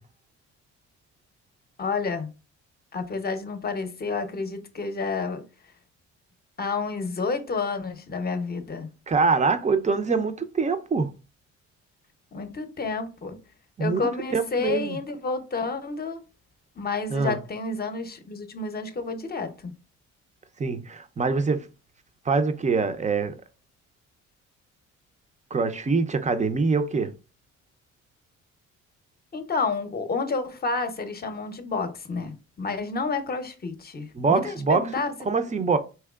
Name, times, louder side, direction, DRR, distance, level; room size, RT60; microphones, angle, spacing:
voice 1, 1.8-2.3 2.9-5.4 6.6-8.9 12.3-13.4 13.8-16.2 16.8-19.7 29.3-35.1, left 4 dB, 30° left, 0.7 m, -30 dB
voice 2, 9.1-11.1 13.8-14.0 14.3-15.0 17.1-17.4 20.6-21.7 22.3-23.3 25.5-27.1 34.1-34.8 35.3-35.8, right 4 dB, 25° right, 0.5 m, -24 dB
4.5 x 2.9 x 2.3 m
cardioid pair, 90°, 30 cm